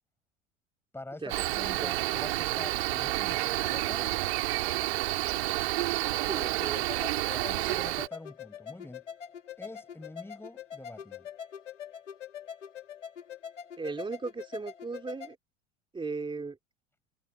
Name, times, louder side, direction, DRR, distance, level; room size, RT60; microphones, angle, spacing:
voice 1, 0.9-4.2 7.3-9.0 9.6-11.3, left 2 dB, 5° left, 5.7 m, -45 dB
Cricket, 1.3-8.1, right 19 dB, 55° right, 3.1 m, -30 dB
voice 2, 6.2-7.0 13.8-15.4 15.9-16.6, right 4 dB, 15° right, 3.8 m, -37 dB
sound 1, 6.6-15.3, left 8 dB, 70° left, 2.9 m, -44 dB
figure-of-eight pair, 80°, 37 cm